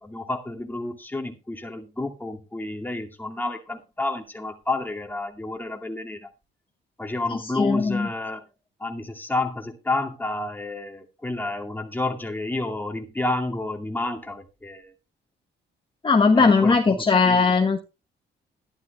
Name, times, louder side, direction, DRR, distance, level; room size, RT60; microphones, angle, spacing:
voice 1, 0.0-6.3 7.0-8.4 8.8-14.9 16.3-17.5, left 2 dB, 10° left, 2.3 m, -30 dB
voice 2, 7.5-8.1 16.0-17.8, left 4 dB, 25° left, 1.3 m, -19 dB
12.5 x 11.5 x 3.3 m
cardioid pair, 90°, 20 cm